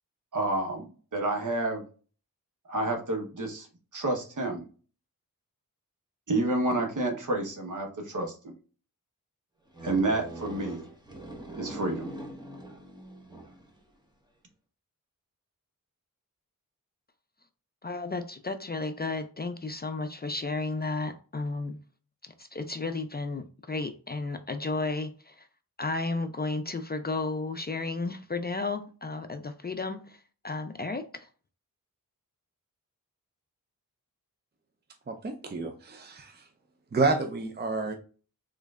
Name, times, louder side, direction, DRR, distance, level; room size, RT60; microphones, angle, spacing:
voice 1, 0.3-0.9 1.1-1.8 2.7-3.7 3.9-4.6 6.3-8.6 9.8-10.8 11.5-12.1, right 2 dB, 60° right, 1.1 m, -29 dB
sound 1, 9.7-13.8, right 1 dB, 10° right, 0.9 m, -42 dB
voice 2, 17.8-21.8 22.4-25.5 25.8-31.3, left 3 dB, 30° left, 0.4 m, -33 dB
voice 3, 35.1-36.4 36.9-37.9, right 3 dB, 30° right, 0.5 m, -29 dB
3.8 x 3.1 x 2.3 m
cardioid pair, 55°, 35 cm